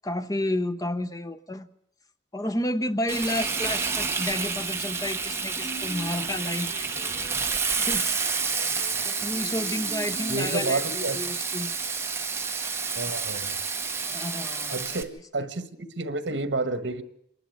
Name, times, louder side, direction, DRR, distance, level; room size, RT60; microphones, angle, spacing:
voice 1, 0.0-1.7 2.3-6.9 7.7-8.2 9.0-11.7 14.1-15.0, left 1 dB, 20° left, 0.9 m, -31 dB
Frying (food), 3.1-15.0, right 5 dB, 15° right, 1.2 m, -29 dB
Electric guitar, 5.5-10.4, equal, 75° left, 2.7 m, -44 dB
voice 2, 10.3-11.2 13.0-13.6 14.7-17.0, right 3 dB, 75° right, 1.5 m, -30 dB
26.5 x 11.5 x 8.7 m
head